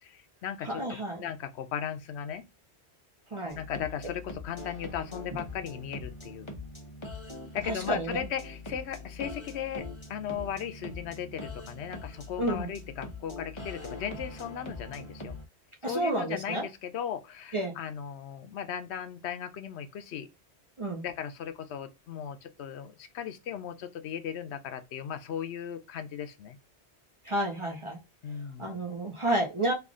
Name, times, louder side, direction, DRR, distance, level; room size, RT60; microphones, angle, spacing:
voice 1, 0.0-2.4 3.6-6.5 7.5-15.4 15.8-20.3 21.0-26.6 28.2-28.8, left 8 dB, 80° left, 0.9 m, -37 dB
voice 2, 0.6-1.2 3.3-3.6 7.7-8.2 12.4-12.7 15.8-16.7 17.5-17.7 20.8-21.0 27.3-28.0 28.6-29.7, right 1 dB, 35° right, 0.6 m, -30 dB
sound 1, 3.5-15.5, left 2 dB, 30° left, 0.9 m, -42 dB
3.4 x 2.4 x 3.6 m
omnidirectional pair, 1.1 m